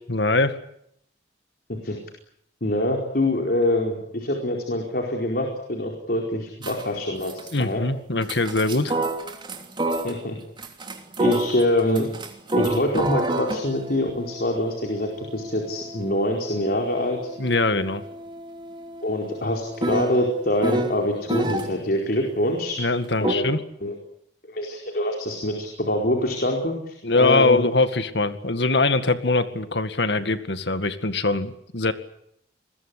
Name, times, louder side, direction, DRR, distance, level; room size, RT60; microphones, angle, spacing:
voice 1, 0.1-0.6 7.5-8.9 17.4-18.0 22.8-23.6 27.0-31.9, left 3 dB, 70° left, 10 dB, 2.1 m, -22 dB
voice 2, 2.6-7.8 9.9-10.4 11.2-12.1 12.6-17.3 19.0-22.8 23.2-23.5 23.8-23.9 24.5-27.6, left 1 dB, 55° left, 2 dB, 4.6 m, -25 dB
sound 1, 6.6-6.9 7.2-7.6 8.2-10.2 10.6-21.7 23.2-23.3, right 1 dB, 25° right, 3.0 m, -29 dB
28.0 x 21.5 x 8.5 m, 0.71 s
head